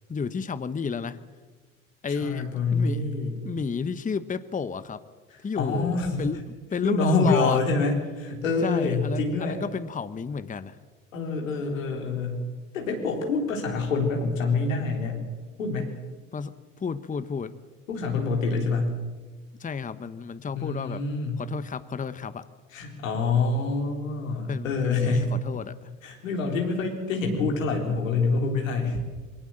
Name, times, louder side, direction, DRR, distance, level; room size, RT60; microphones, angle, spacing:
voice 1, 0.1-1.2 2.0-3.0 3.4-5.0 5.4-6.4 6.7-7.6 8.6-10.8 16.3-17.5 18.5-18.7 19.6-21.0 21.4-22.5 24.5-25.9 28.8-28.9, left 5 dB, 20° left, 14 dB, 1.0 m, -31 dB
voice 2, 2.2-3.5 5.3-6.2 6.8-9.6 11.1-12.4 12.7-15.2 15.6-15.9 17.9-19.0 20.6-21.4 22.7-25.3 26.0-29.0, left 3 dB, 90° left, 2 dB, 4.0 m, -26 dB
22.5 x 18.0 x 7.8 m, 1.4 s
hypercardioid pair, 70°, 38 cm